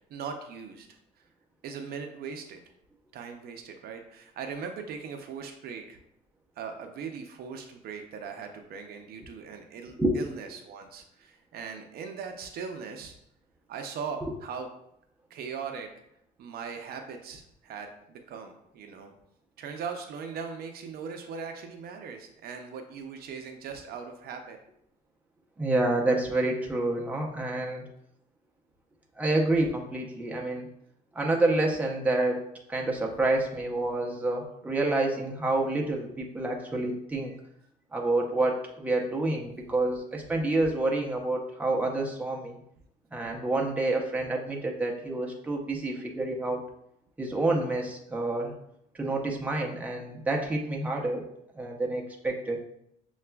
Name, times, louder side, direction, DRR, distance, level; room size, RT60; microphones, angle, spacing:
voice 1, 0.1-1.0 1.6-2.6 3.1-6.0 6.6-13.2 13.7-14.7 15.3-15.9 16.4-19.1 19.6-24.6 37.2-37.4, right 6 dB, 65° right, 5 dB, 0.6 m, -39 dB
voice 2, 25.6-27.9 29.2-30.7 31.1-32.4 32.7-37.3 37.9-42.6 43.1-46.6 47.2-48.5 48.9-51.2 51.5-52.6, right 2 dB, 10° right, -1 dB, 0.7 m, -28 dB
6.6 x 2.3 x 2.2 m, 0.76 s
cardioid pair, 110°, 17 cm